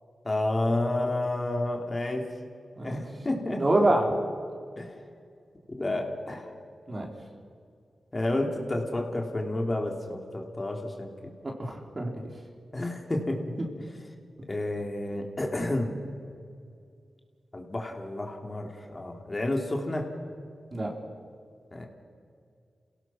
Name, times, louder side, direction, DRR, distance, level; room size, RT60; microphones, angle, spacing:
voice 1, 0.3-2.3 2.8-3.9 4.8-4.9 5.8-6.5 8.1-11.3 12.7-13.6 14.5-15.9 17.5-20.1 21.7-21.9, left 1 dB, 35° left, 2 dB, 3.3 m, -30 dB
voice 2, 3.5-4.1 6.9-7.1 11.4-12.1 13.6-13.7 20.7-20.9, right 1 dB, 40° right, 1 dB, 3.9 m, -26 dB
27.5 x 17.5 x 6.2 m, 2.3 s
cardioid pair, 50°, 0 cm